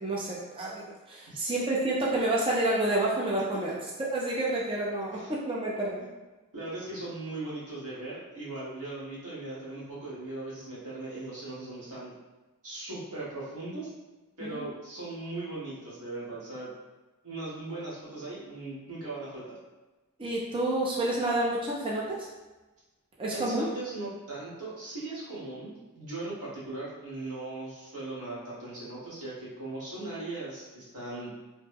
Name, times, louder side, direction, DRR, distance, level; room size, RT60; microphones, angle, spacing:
voice 1, 0.0-6.0 14.4-14.6 20.2-22.3 23.2-23.7, right 1 dB, 25° right, -4 dB, 0.4 m, -29 dB
voice 2, 6.5-12.1 12.6-13.9 14.4-16.7 17.2-19.5 23.3-31.3, right 2 dB, 90° right, -9 dB, 1.4 m, -39 dB
3.1 x 2.1 x 3.3 m, 1.2 s
head